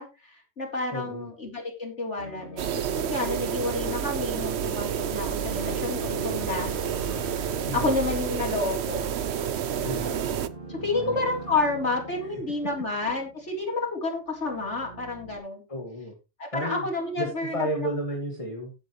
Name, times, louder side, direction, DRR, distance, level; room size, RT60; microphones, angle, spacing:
voice 1, 0.0-6.7 7.4-9.1 10.7-15.6 16.4-17.9, left 3 dB, 75° left, 0 dB, 4.2 m, -30 dB
voice 2, 0.9-1.3 7.7-7.9 9.8-10.2 10.8-11.2 12.2-12.4 15.7-16.1 16.5-16.9 17.2-18.7, equal, 30° left, 0 dB, 2.4 m, -32 dB
sound 1, 2.2-13.8 14.3-15.4, right 1 dB, 45° right, 2.3 m, -43 dB
sound 2, 2.6-10.5, right 9 dB, 65° right, 1.0 m, -29 dB
15.5 x 7.8 x 3.3 m, 0.28 s
omnidirectional pair, 1.2 m